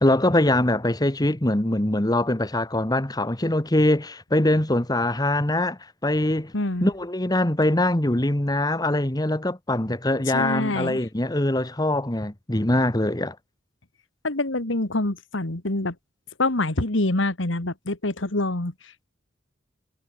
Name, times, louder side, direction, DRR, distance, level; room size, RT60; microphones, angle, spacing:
voice 1, 0.0-6.5 6.8-13.4, left 1 dB, 20° left, 1.4 m, -23 dB
voice 2, 6.5-6.9 10.3-11.0 14.2-16.0 16.4-18.7, left 2 dB, 85° left, 2.3 m, -25 dB
head